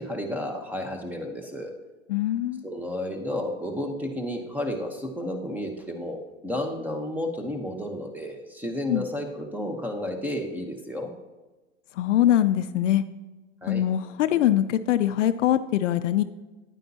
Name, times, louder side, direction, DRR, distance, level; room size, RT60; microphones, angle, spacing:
voice 1, 0.0-1.7 2.6-11.1 13.6-13.8, left 1 dB, 5° right, 4 dB, 1.0 m, -32 dB
voice 2, 2.1-2.6 8.9-9.0 12.0-13.0 13.7-16.2, left 12 dB, 65° left, 12 dB, 0.5 m, -23 dB
9.8 x 9.0 x 2.8 m, 1.2 s
hypercardioid pair, 110°, 40 cm